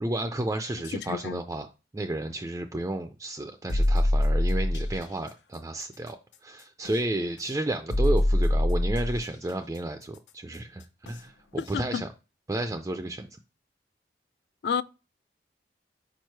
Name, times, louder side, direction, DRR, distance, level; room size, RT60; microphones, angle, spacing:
voice 1, 0.0-1.7 1.9-6.2 6.4-12.1 12.5-13.4, right 1 dB, 15° right, 0.3 m, -32 dB
voice 2, 0.9-1.4 11.6-12.0 14.6-14.8, left 6 dB, 65° left, 0.3 m, -30 dB
sound 1, 3.7-5.0 6.8-7.0 7.9-9.2 11.1-11.2 11.7-11.8, left 1 dB, 90° left, 0.7 m, -24 dB
5.0 x 4.6 x 4.5 m
head